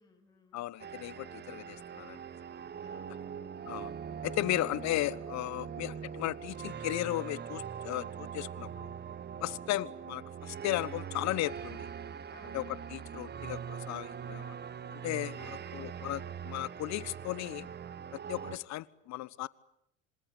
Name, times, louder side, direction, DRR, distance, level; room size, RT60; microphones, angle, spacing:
voice 1, 0.0-0.7 2.8-3.5 5.5-5.8 9.3-9.7 12.3-12.6 15.4-16.1, left 2 dB, 10° left, 7.8 m, -60 dB
voice 2, 0.5-2.2 3.7-3.9 4.2-8.9 9.4-11.9 12.5-14.5 14.9-15.4 15.7-17.7 18.1-19.5, left 16 dB, 45° left, 1.1 m, -35 dB
sound 1, 0.8-18.6, right 7 dB, 25° right, 1.2 m, -42 dB
26.5 x 26.0 x 8.4 m
hypercardioid pair, 80°, 38 cm